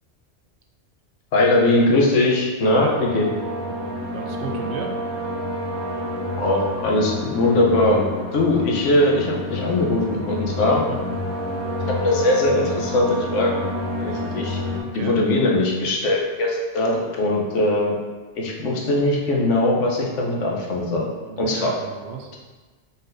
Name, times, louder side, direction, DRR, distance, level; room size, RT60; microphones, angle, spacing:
voice 1, 1.3-3.3 6.4-8.1 8.3-10.8 12.0-13.5 14.0-14.6 14.9-17.9 18.4-21.1 21.4-21.7, left 2 dB, 90° left, -2 dB, 1.1 m, -20 dB
voice 2, 2.6-2.9 3.6-5.0 10.8-11.0 14.8-15.2 21.2-22.3, right 6 dB, 75° right, 2 dB, 0.9 m, -35 dB
sound 1, 2.8-14.8, left 1 dB, 30° left, 0.7 m, -29 dB
4.0 x 4.0 x 2.6 m, 1.3 s
omnidirectional pair, 1.2 m